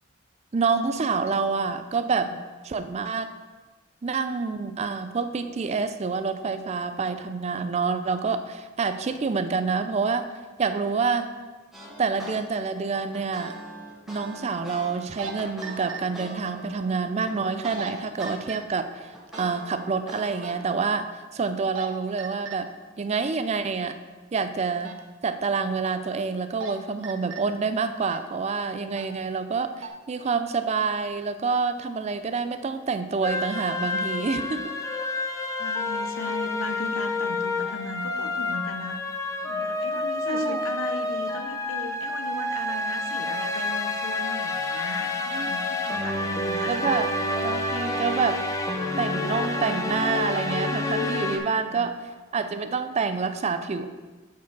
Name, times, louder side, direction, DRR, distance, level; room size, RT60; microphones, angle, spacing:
voice 1, 0.5-2.3 2.6-3.3 4.0-10.3 10.6-11.3 12.0-13.5 14.1-19.1 19.4-21.1 21.3-22.7 23.0-24.0 24.3-24.9 25.2-34.7 40.3-40.6 45.3-45.5 45.9-46.0 46.7-47.1 47.4-48.4 49.0-52.0 52.3-53.9, right 5 dB, 30° right, 10 dB, 0.4 m, -27 dB
sound 1, 11.7-12.4 12.7-18.4 18.7-20.5, right 1 dB, ahead, 1.5 m, -42 dB
sound 2, 15.0-15.3 15.6-16.0 17.6-17.9 18.2-18.6 19.3-19.5 20.4-20.6 21.5-21.9 22.2-22.6 24.8-25.0 26.3-26.7 27.0-27.4 28.0-28.3 28.9-29.1 29.6-29.9, right 7 dB, 70° right, 0.7 m, -36 dB
sound 3, 33.2-51.4, left 2 dB, 15° left, 0.6 m, -29 dB
voice 2, 35.6-39.0 39.5-47.0 51.5-51.9, left 2 dB, 75° left, 8 dB, 0.7 m, -37 dB
8.2 x 4.7 x 4.6 m, 1.3 s
head